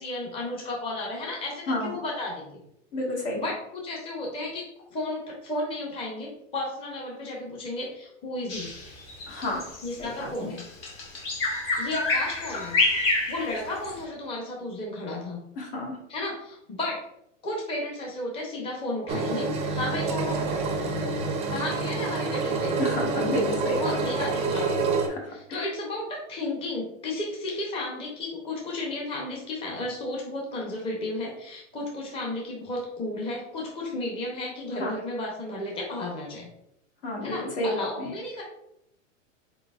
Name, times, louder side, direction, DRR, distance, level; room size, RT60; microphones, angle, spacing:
voice 1, 0.0-2.6 3.3-8.7 9.8-10.6 11.8-12.8 13.3-15.4 16.1-17.0 17.4-20.5 21.5-22.8 23.8-25.0 25.3-36.5 37.2-38.4, left 2 dB, 15° left, -2 dB, 0.7 m, -33 dB
voice 2, 2.9-3.4 9.3-10.5 15.5-16.0 22.8-24.0 25.1-25.6 34.8-34.9 37.0-38.1, left 1 dB, 60° left, -1 dB, 1.6 m, -31 dB
Bird vocalization bird call bird song, 8.5-14.0, left 2 dB, 35° left, 1.0 m, -28 dB
Engine, 19.1-25.1, right 3 dB, 15° right, 0.5 m, -27 dB
4.3 x 3.8 x 2.4 m, 0.77 s
hypercardioid pair, 135°, 38 cm